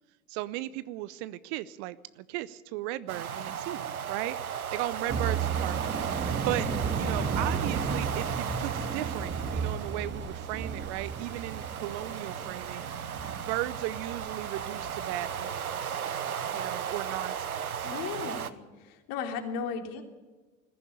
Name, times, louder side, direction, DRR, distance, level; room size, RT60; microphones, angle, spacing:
voice 1, 0.3-6.7 7.0-12.9 13.3-16.0 16.5-17.9, right 16 dB, 50° right, 17 dB, 0.9 m, -36 dB
sound 1, 3.1-18.5, right 8 dB, 80° right, 1.0 m, -35 dB
sound 2, 5.1-15.5, right 5 dB, 25° right, 2.3 m, -34 dB
voice 2, 17.8-20.0, left 6 dB, 50° left, 4 dB, 3.2 m, -36 dB
20.5 x 14.5 x 8.7 m, 1.3 s
figure-of-eight pair, 75°, 43 cm